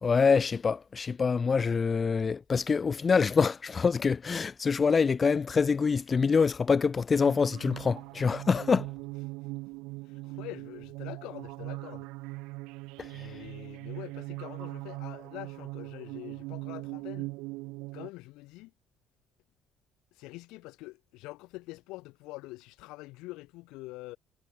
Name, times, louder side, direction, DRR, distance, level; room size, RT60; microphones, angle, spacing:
voice 1, 0.0-8.8 13.0-13.1, left 5 dB, 35° left, 0.5 m, -25 dB
sound 1, 7.2-18.1, right 23 dB, 85° right, 4.1 m, -40 dB
voice 2, 10.0-12.1 13.1-17.3 17.9-18.7 20.1-24.2, left 21 dB, 80° left, 4.9 m, -45 dB
supercardioid pair, 70°, 0 cm